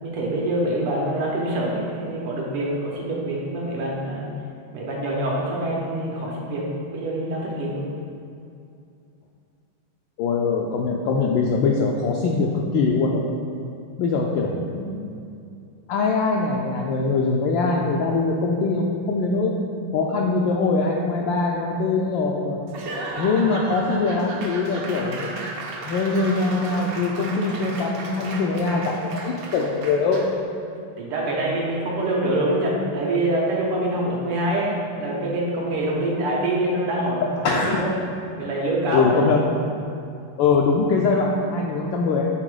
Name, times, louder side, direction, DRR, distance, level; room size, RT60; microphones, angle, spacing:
voice 1, 0.0-4.2 4.7-7.9 31.0-37.9 38.4-39.3, right 1 dB, 85° right, -3 dB, 2.1 m, -25 dB
voice 2, 10.2-13.2 14.0-15.1 15.9-19.5 19.9-22.6 23.2-25.3 25.9-30.2 37.4-37.8 38.9-39.4 40.4-42.2, left 4 dB, 75° left, -1 dB, 1.2 m, -22 dB
Laughter / Applause / Crowd, 22.7-30.4, right 2 dB, 65° right, 0.9 m, -34 dB
7.7 x 3.8 x 4.8 m, 2.5 s
omnidirectional pair, 2.4 m